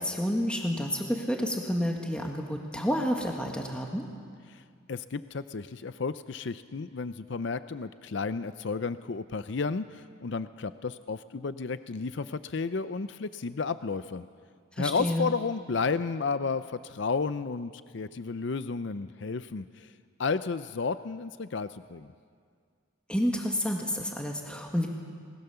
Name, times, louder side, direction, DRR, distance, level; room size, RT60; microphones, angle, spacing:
voice 1, 0.0-4.0 14.7-15.3 23.1-24.9, equal, 5° left, 1 dB, 1.5 m, -29 dB
voice 2, 4.9-14.2 14.8-19.9 20.2-22.1, left 4 dB, 60° left, 12 dB, 0.5 m, -32 dB
28.0 x 20.0 x 6.9 m, 2.1 s
head